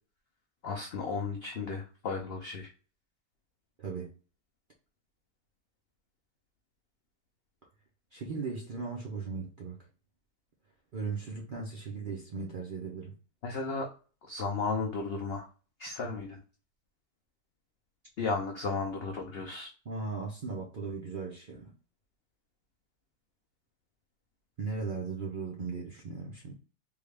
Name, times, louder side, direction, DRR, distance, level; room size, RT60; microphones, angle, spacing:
voice 1, 0.6-2.7 13.4-13.9 14.2-15.5 15.8-16.4 18.2-19.7, left 4 dB, 80° left, 0.5 m, -34 dB
voice 2, 3.8-4.1 8.1-9.8 10.9-13.1 19.8-21.7 24.6-26.5, right 4 dB, 55° right, 0.6 m, -37 dB
3.6 x 2.3 x 3.2 m
omnidirectional pair, 1.8 m